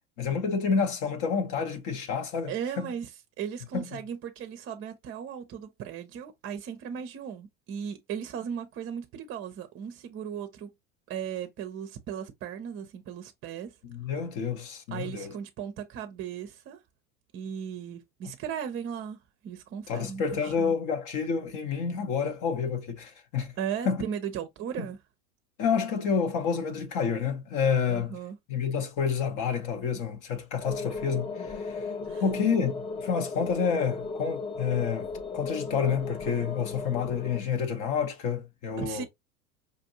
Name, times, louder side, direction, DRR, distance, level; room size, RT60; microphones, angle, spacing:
voice 1, 0.2-2.9 3.7-3.8 13.8-15.3 19.9-23.5 23.8-24.0 25.6-28.2 28.5-31.9 32.2-35.1 35.3-39.1, left 6 dB, 45° left, 0.9 m, -29 dB
voice 2, 2.5-3.1 3.4-10.7 11.1-13.8 14.9-16.8 17.3-19.2 19.4-20.7 23.6-25.0 27.9-28.4 32.0-32.2 38.8-39.1, right 8 dB, 30° right, 0.6 m, -37 dB
sound 1, 30.6-37.4, left 4 dB, 15° left, 0.4 m, -36 dB
5.2 x 2.6 x 2.7 m
hypercardioid pair, 85°, 45 cm